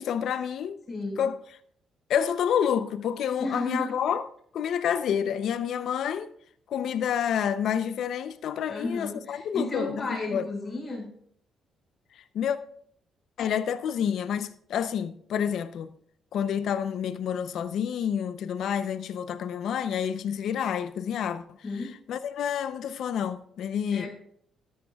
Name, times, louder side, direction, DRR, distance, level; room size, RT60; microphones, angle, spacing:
voice 1, 0.0-0.8 1.2-1.4 2.1-4.3 4.5-6.3 6.7-10.4 12.3-12.6 13.4-15.9 16.3-21.4 21.8-24.1, left 8 dB, 70° left, 0.6 m, -29 dB
voice 2, 0.9-1.2 3.4-3.9 8.6-11.1 21.6-21.9 23.9-24.1, left 2 dB, 35° left, 5.1 m, -33 dB
13.0 x 12.0 x 2.4 m
cardioid pair, 90°, 0 cm